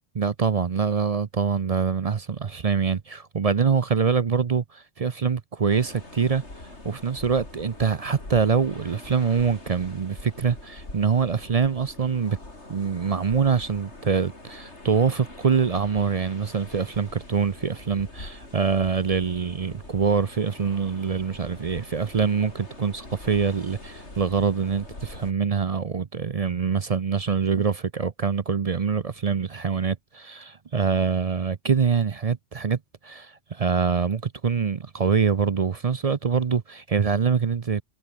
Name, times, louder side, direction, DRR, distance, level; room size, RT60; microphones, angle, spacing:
voice 1, 0.2-6.4 6.8-12.4 12.7-37.8, right 6 dB, 40° right, 0.6 m, -24 dB
sound 1, 5.7-25.3, left 2 dB, 70° left, 5.3 m, -43 dB
omnidirectional pair, 1.2 m